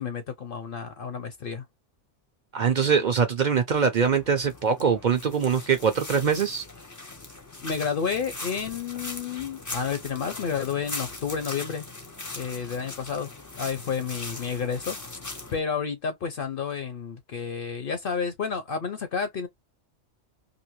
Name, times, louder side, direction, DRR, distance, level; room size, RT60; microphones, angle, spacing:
voice 1, 0.0-1.6 7.6-11.9 12.4-13.3 13.6-15.0 15.5-19.5, left 6 dB, 55° left, 0.7 m, -30 dB
voice 2, 2.5-6.6, right 6 dB, 55° right, 0.5 m, -23 dB
sound 1, 4.0-15.6, left 2 dB, 20° left, 0.5 m, -40 dB
2.7 x 2.6 x 2.9 m
omnidirectional pair, 1.2 m